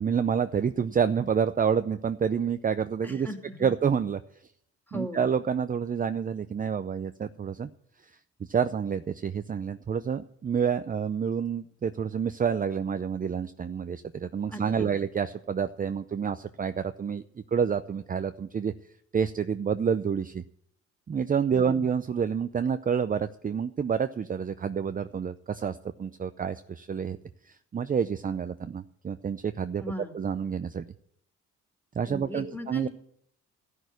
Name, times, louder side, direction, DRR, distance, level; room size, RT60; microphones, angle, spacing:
voice 1, 0.0-3.3 3.6-4.2 4.9-7.7 8.4-17.2 17.5-18.7 19.1-20.4 21.1-27.2 27.4-29.8 30.1-30.9 31.9-32.9, right 7 dB, 30° right, 9 dB, 0.6 m, -28 dB
voice 2, 3.0-3.6 4.9-5.2 14.5-15.0 21.5-21.8 29.8-30.2 32.1-32.9, equal, 5° left, 3 dB, 2.7 m, -38 dB
14.5 x 6.4 x 9.3 m, 0.69 s
cardioid pair, 90°, 30 cm